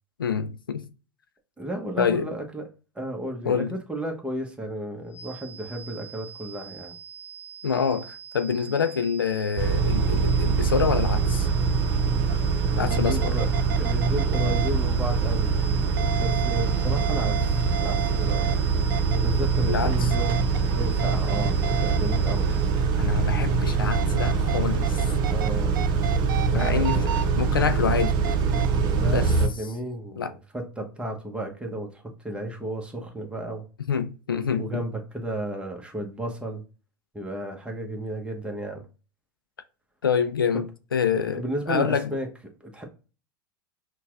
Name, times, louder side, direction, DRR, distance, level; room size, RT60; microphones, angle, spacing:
voice 1, 0.2-0.9 2.0-2.3 3.4-3.7 7.6-11.5 12.8-13.3 19.7-20.1 23.0-25.1 26.5-28.2 29.1-29.3 30.2-30.3 33.9-34.8 40.0-42.1, left 6 dB, 85° left, 0.4 m, -26 dB
voice 2, 1.6-2.7 2.9-6.9 12.8-13.5 13.8-15.5 16.2-18.6 19.1-20.4 20.6-22.5 25.3-25.9 26.5-27.3 28.9-33.6 34.6-36.6 37.1-38.8 40.5-40.6 41.3-42.3 42.6-42.8, right 1 dB, 10° right, 1.0 m, -33 dB
sound 1, 5.1-22.9, right 8 dB, 65° left, 0.9 m, -43 dB
Car / Idling / Accelerating revving vroom, 9.6-29.5, right 5 dB, 45° right, 0.7 m, -23 dB
sound 2, 12.3-12.4 12.9-14.7 16.0-18.6 18.9-19.2 20.1-20.6 21.0-22.3 23.9-25.5 25.7-27.2 28.0-28.7, right 8 dB, 75° right, 0.4 m, -33 dB
5.7 x 2.3 x 2.5 m
figure-of-eight pair, 85°, 11 cm